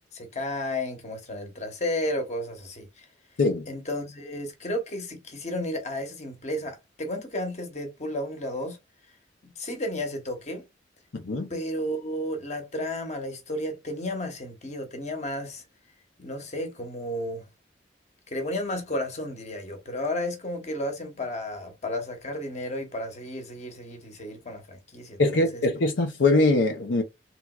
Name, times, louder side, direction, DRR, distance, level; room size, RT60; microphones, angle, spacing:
voice 1, 0.0-3.1 3.7-8.8 9.6-10.7 11.5-15.6 16.2-17.5 18.3-25.6, left 1 dB, 40° left, 0.9 m, -33 dB
voice 2, 11.1-11.5 25.2-27.0, left 2 dB, 85° left, 0.6 m, -22 dB
3.4 x 2.9 x 2.3 m
head